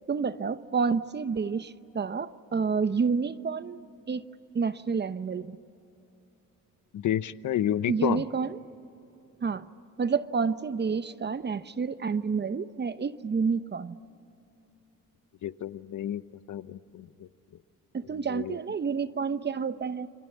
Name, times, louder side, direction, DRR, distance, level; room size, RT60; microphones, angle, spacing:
voice 1, 0.1-4.3 4.5-5.6 7.9-8.6 9.4-9.7 10.0-14.0 17.9-20.1, right 5 dB, 30° right, 0.8 m, -29 dB
voice 2, 6.9-8.2 15.4-16.2 16.5-17.3 18.3-18.6, left 11 dB, 60° left, 0.9 m, -30 dB
29.5 x 23.0 x 8.6 m
cardioid pair, 85°, 34 cm